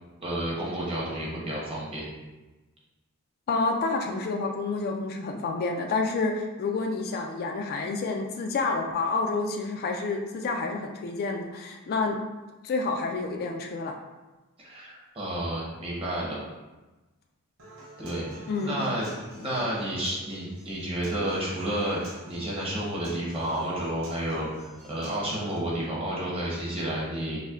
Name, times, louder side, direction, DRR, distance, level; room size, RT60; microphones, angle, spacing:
voice 1, 0.2-2.0 14.6-16.5 18.0-22.0 22.3-24.5 24.8-27.4, right 1 dB, 25° right, -5 dB, 0.9 m, -31 dB
voice 2, 3.5-12.2 12.6-14.0 18.5-18.8, left 3 dB, 45° left, 3 dB, 0.3 m, -29 dB
Human voice / Acoustic guitar, 17.6-25.6, right 1 dB, 65° right, 0.8 m, -47 dB
5.5 x 2.1 x 2.4 m, 1.1 s
head